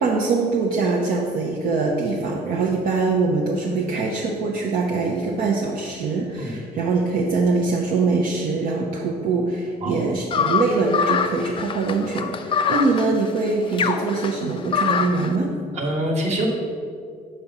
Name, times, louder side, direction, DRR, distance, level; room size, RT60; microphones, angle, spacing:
voice 1, 0.0-15.5, right 3 dB, 60° right, -2 dB, 0.7 m, -23 dB
sound 1, 10.3-15.3, left 6 dB, 30° left, 0.3 m, -24 dB
voice 2, 15.7-16.5, right 1 dB, 40° right, 0 dB, 1.4 m, -25 dB
5.2 x 4.3 x 5.9 m, 2.2 s
cardioid pair, 110°, 17 cm